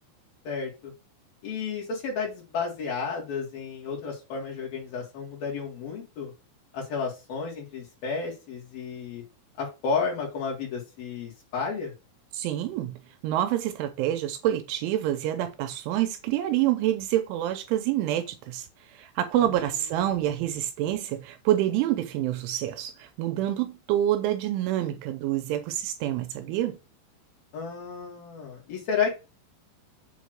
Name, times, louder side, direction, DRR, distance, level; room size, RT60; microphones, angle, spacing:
voice 1, 0.4-0.9 1.4-6.3 6.7-9.2 9.6-11.9 19.4-20.2 27.5-29.1, left 5 dB, 55° left, 3.1 m, -32 dB
voice 2, 12.3-18.7 18.9-26.8, right 12 dB, 85° right, 3.0 m, -27 dB
7.9 x 3.1 x 6.2 m
omnidirectional pair, 5.9 m